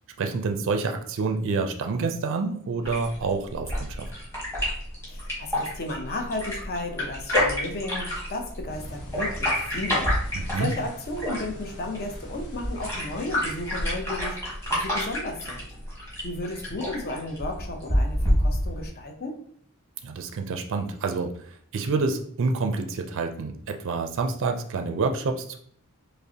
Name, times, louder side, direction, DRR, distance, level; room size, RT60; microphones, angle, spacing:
voice 1, 0.2-4.1 10.3-10.7 20.0-21.3 21.7-25.6, right 4 dB, 60° right, 5 dB, 0.4 m, -28 dB
sound 1, 2.8-18.8, equal, 10° left, 1.3 m, -29 dB
voice 2, 5.1-15.7 16.2-19.4, left 2 dB, 45° left, 3 dB, 0.7 m, -34 dB
sound 2, 8.7-13.8, equal, 80° left, 1.0 m, -44 dB
5.2 x 2.1 x 2.8 m, 0.63 s
head